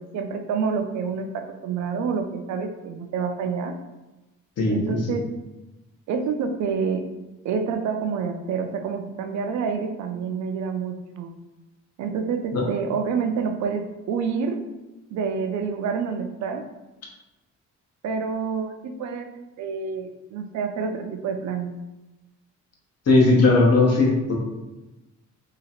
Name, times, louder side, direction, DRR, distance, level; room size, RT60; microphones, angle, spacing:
voice 1, 0.0-3.7 4.7-5.3 6.1-7.0 7.4-11.3 12.0-14.6 15.1-16.6 18.0-19.3 19.6-21.7, right 5 dB, 65° right, 6 dB, 0.5 m, -28 dB
voice 2, 4.6-5.0 12.5-12.6 23.1-24.4, left 2 dB, 55° left, -1 dB, 0.9 m, -18 dB
2.8 x 2.4 x 2.8 m, 1.0 s
cardioid pair, 90°, 30 cm